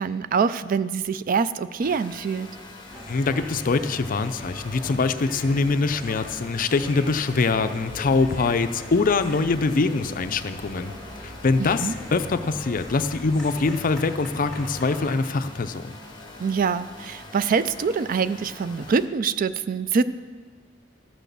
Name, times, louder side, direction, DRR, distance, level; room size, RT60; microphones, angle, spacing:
voice 1, 0.0-2.5 11.6-12.0 16.4-20.0, right 5 dB, 45° right, 14 dB, 0.3 m, -24 dB
sound 1, 1.8-19.1, left 2 dB, 25° left, 1.4 m, -44 dB
sound 2, 2.9-15.2, left 1 dB, ahead, 2.2 m, -40 dB
voice 2, 3.1-10.9 11.2-15.9, left 3 dB, 45° left, 10 dB, 0.5 m, -23 dB
12.5 x 6.2 x 6.8 m, 1.5 s
head